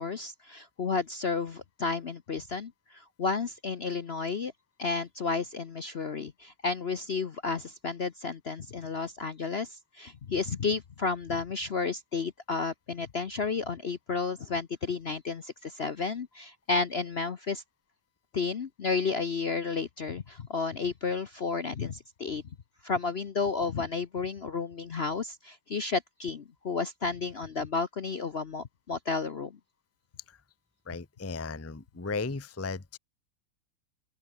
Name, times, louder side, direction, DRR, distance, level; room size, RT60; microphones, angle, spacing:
voice 1, 0.0-4.5 4.8-17.6 18.3-22.4 22.8-29.6, left 4 dB, 45° left, 0.8 m, -32 dB
voice 2, 30.9-33.0, left 4 dB, 15° left, 0.6 m, -36 dB
open air
omnidirectional pair, 2.0 m